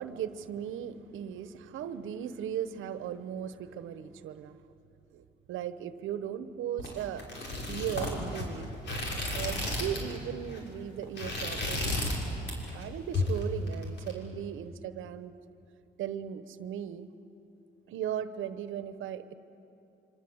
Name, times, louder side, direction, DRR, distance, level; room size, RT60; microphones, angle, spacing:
voice 1, 0.0-4.6 5.1-7.2 7.7-8.7 9.3-12.0 12.7-15.3 16.0-17.1 17.9-19.3, right 9 dB, 85° right, 12 dB, 1.1 m, -37 dB
sound 1, 6.8-10.2 10.4-10.7 11.0-12.2 12.5-12.8 13.1-14.1, left 2 dB, 65° left, 6.4 m, -33 dB
27.5 x 25.0 x 8.1 m, 2.8 s
cardioid pair, 90°, 20 cm